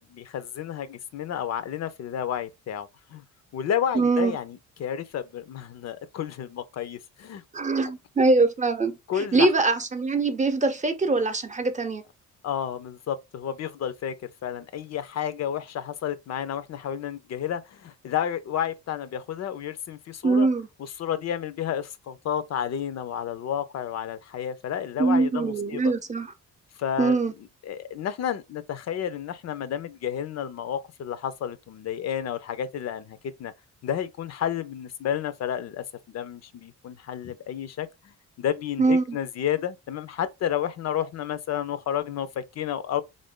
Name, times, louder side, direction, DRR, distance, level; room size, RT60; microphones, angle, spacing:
voice 1, 0.0-3.2 3.5-7.4 9.1-9.5 12.4-20.5 21.0-25.8 26.8-27.2 27.6-33.5 33.8-43.0, left 9 dB, 60° left, 0.5 m, -31 dB
voice 2, 3.9-4.4 7.5-12.0 20.2-20.7 25.0-26.3 27.0-27.3 38.8-39.2, right 3 dB, 25° right, 0.7 m, -23 dB
3.6 x 2.6 x 3.5 m
cardioid pair, 90°, 30 cm